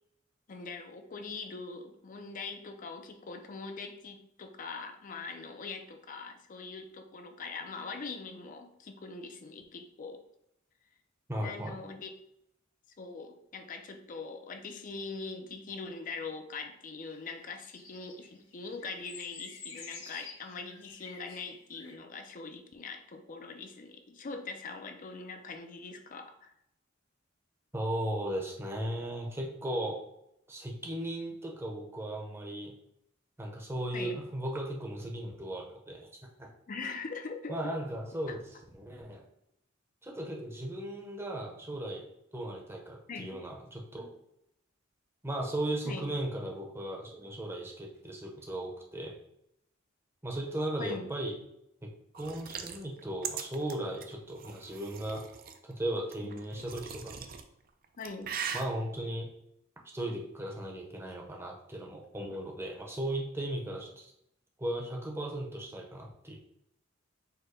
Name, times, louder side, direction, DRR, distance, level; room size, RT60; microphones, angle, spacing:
voice 1, 0.5-10.2 11.4-12.1 13.0-26.5 33.9-34.2 36.7-37.8 38.3-38.4 43.1-43.4 45.9-46.1 50.8-51.1 56.2-56.4 58.0-58.3, left 4 dB, 40° left, 6 dB, 0.4 m, -42 dB
voice 2, 11.3-11.8 27.7-30.0 30.5-32.7 33.4-36.1 36.4-36.5 37.5-38.4 38.7-39.2 40.0-42.1 42.3-44.1 45.2-49.2 50.2-51.3 51.8-55.2 55.6-57.3 58.5-59.3 59.9-64.1 64.6-66.4, right 1 dB, 10° right, 0 dB, 0.7 m, -36 dB
sound 1, 17.1-21.9, left 4 dB, 80° left, 1.0 m, -49 dB
sound 2, 52.1-55.6 56.1-57.4 57.8-58.6, right 7 dB, 45° right, 0.4 m, -40 dB
4.6 x 2.1 x 4.7 m, 0.77 s
head